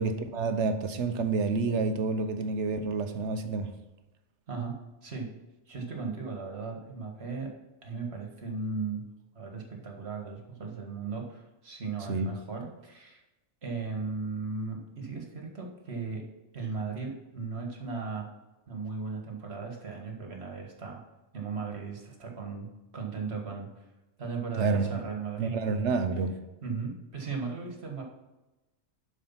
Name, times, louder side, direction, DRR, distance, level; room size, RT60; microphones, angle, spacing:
voice 1, 0.0-3.7 12.1-12.3 24.6-25.0 25.4-26.4, right 4 dB, 80° right, 8 dB, 1.2 m, -28 dB
voice 2, 4.5-5.3 5.7-7.5 7.8-9.1 9.4-13.2 13.6-16.2 16.5-18.3 18.7-21.0 21.3-22.7 22.9-23.9 24.2-25.6 26.6-28.0, right 4 dB, 65° right, 1 dB, 1.9 m, -37 dB
11.0 x 4.8 x 5.7 m, 1.0 s
omnidirectional pair, 1.2 m